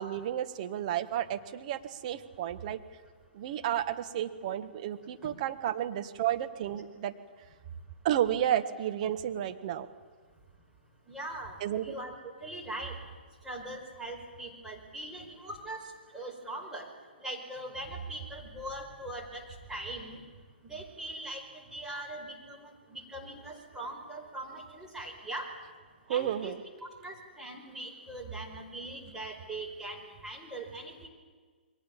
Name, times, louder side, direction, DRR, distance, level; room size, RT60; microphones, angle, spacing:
voice 1, 0.0-2.8 3.3-7.1 8.0-9.9 11.6-11.8 26.1-26.6, right 11 dB, 40° right, 8 dB, 1.6 m, -32 dB
voice 2, 11.1-11.6 11.8-13.0 13.4-16.9 17.2-20.2 20.6-21.5 21.7-25.5 26.1-26.5 27.0-31.1, right 2 dB, 10° right, 0 dB, 5.0 m, -41 dB
28.5 x 23.0 x 7.4 m, 1.5 s
figure-of-eight pair, 120°, 6 cm